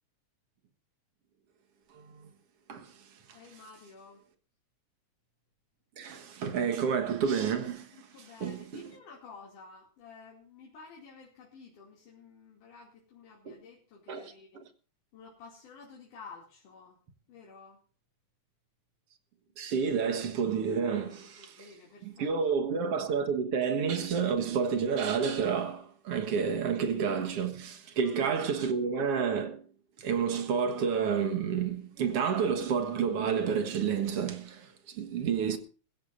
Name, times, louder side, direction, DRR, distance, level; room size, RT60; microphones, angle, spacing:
voice 1, 1.9-2.3 2.7-2.9 6.0-7.9 8.4-8.8 13.5-13.6 14.1-14.3 19.6-21.7 22.0-29.6 30.0-35.6, right 6 dB, 55° right, 2.2 m, -30 dB
voice 2, 3.3-4.2 8.1-14.5 15.1-17.0 17.3-17.8 21.4-22.5 28.0-28.3, left 4 dB, 80° left, 4.1 m, -52 dB
21.5 x 15.5 x 2.6 m
omnidirectional pair, 3.6 m